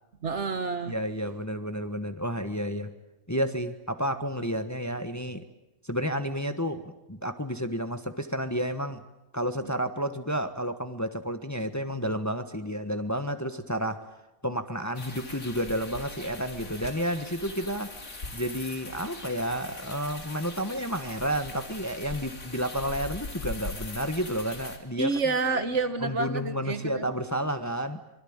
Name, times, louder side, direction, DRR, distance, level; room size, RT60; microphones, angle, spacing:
voice 1, 0.2-1.0 25.0-27.1, right 4 dB, 55° right, 10 dB, 1.6 m, -29 dB
voice 2, 0.9-2.9 3.3-5.4 5.8-9.0 9.3-14.0 14.4-17.9 18.3-25.1 26.0-28.0, equal, 15° left, 8 dB, 1.3 m, -31 dB
sound 1, 14.9-24.8, left 3 dB, 75° left, 3.5 m, -41 dB
25.5 x 23.5 x 8.8 m, 0.90 s
omnidirectional pair, 1.5 m